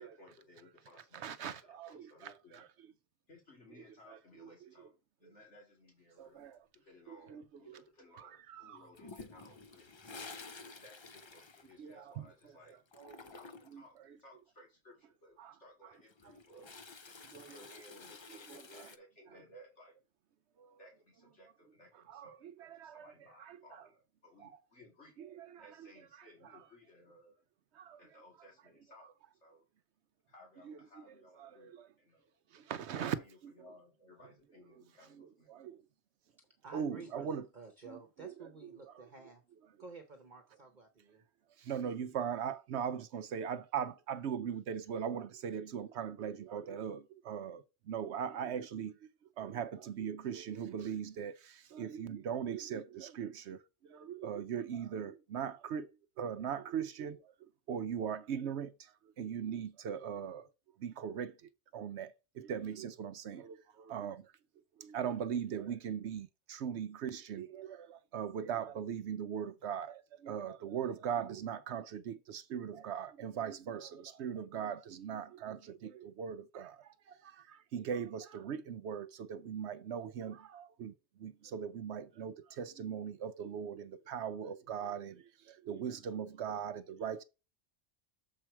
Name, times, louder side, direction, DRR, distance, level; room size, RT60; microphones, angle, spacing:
voice 1, 0.0-2.6 3.3-4.9 5.2-6.4 6.8-10.3 10.8-12.8 13.2-16.7 17.0-19.9 20.8-25.1 25.6-27.4 28.0-29.1 29.4-29.6 30.3-31.7 32.0-32.3 33.1-35.5, left 1 dB, 70° left, 2.7 m, -60 dB
voice 2, 1.2-2.7 4.1-4.2 6.2-6.6 7.1-7.8 8.1-8.8 11.8-12.2 13.0-13.2 13.7-13.8 15.4-15.5 17.3-17.6 18.5-18.9 20.6-20.8 22.1-23.1 23.4-23.8 24.4-24.5 25.2-25.7 26.4-26.6 27.7-28.0 30.7-30.8 31.4-31.9 32.5-33.2 33.4-33.5 35.2-35.8 36.7-37.5 37.9-38.0 41.6-49.0 49.4-55.9 56.2-60.5 60.8-64.3 64.8-80.9 81.2-87.2, right 8 dB, 70° right, 0.8 m, -40 dB
Toilet flush, 8.9-12.4 12.7-13.9 15.9-19.0, left 4 dB, 40° left, 0.4 m, -51 dB
voice 3, 36.6-39.4 39.8-41.2, right 4 dB, 40° right, 1.1 m, -52 dB
7.5 x 4.4 x 4.5 m
omnidirectional pair, 1.2 m